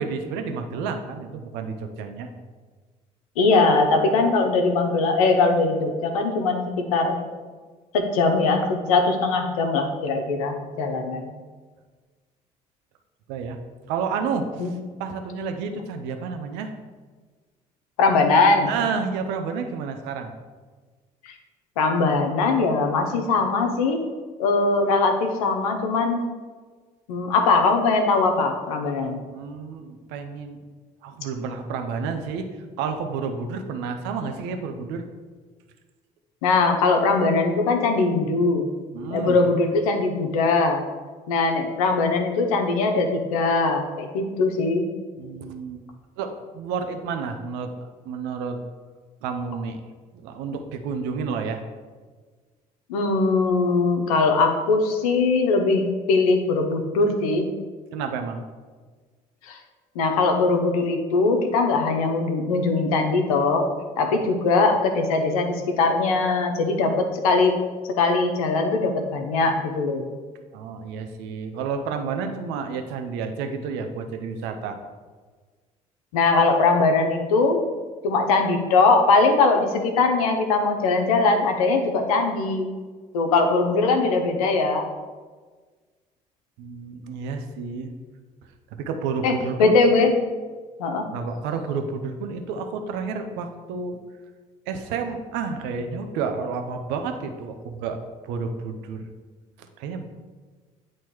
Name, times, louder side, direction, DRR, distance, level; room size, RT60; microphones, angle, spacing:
voice 1, 0.0-2.3 13.3-13.6 13.9-16.7 18.6-20.3 29.3-30.6 31.0-32.5 32.8-35.0 38.9-39.4 45.2-45.8 46.2-47.7 48.0-48.6 49.2-49.8 50.2-51.6 57.9-58.4 64.1-64.3 70.5-74.8 86.6-87.9 88.7-89.7 91.0-94.0 94.7-98.0 98.2-99.1 99.8-100.1, right 5 dB, 75° right, 6 dB, 0.7 m, -30 dB
voice 2, 3.4-7.2 7.9-11.3 14.6-14.7 18.0-18.7 21.8-24.0 24.4-26.2 27.1-29.2 36.4-38.7 39.1-40.8 41.3-44.9 52.9-57.5 59.4-59.6 59.9-63.6 64.0-67.5 68.0-70.1 76.1-77.6 78.0-82.7 83.1-84.9 89.2-90.1 90.8-91.1, left 3 dB, 85° left, 4 dB, 0.7 m, -21 dB
8.5 x 3.0 x 4.5 m, 1.4 s
hypercardioid pair, 60°, 18 cm